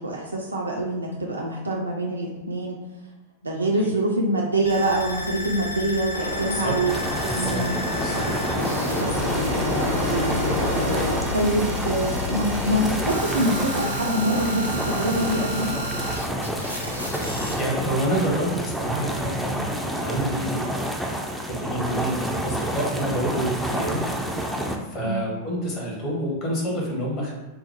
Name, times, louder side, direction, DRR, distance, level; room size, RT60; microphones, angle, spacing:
voice 1, 0.0-2.8 3.4-6.9 7.3-7.8 9.0-9.3 10.1-10.4 11.3-15.7 25.0-25.4, right 1 dB, 80° right, -1 dB, 0.4 m, -25 dB
sound 1, 4.6-17.6, left 2 dB, 85° left, 0.5 m, -32 dB
sound 2, 6.1-11.2, equal, 65° left, 1.3 m, -28 dB
voice 2, 6.3-6.7 7.2-7.6 8.0-8.3 9.0-9.2 17.5-20.6 21.3-24.0 24.8-27.3, right 1 dB, 35° left, -3 dB, 1.1 m, -28 dB
sound 3, 6.9-24.8, equal, ahead, 0.4 m, -29 dB
3.8 x 2.0 x 2.9 m, 1.1 s
figure-of-eight pair, 90°, 0 cm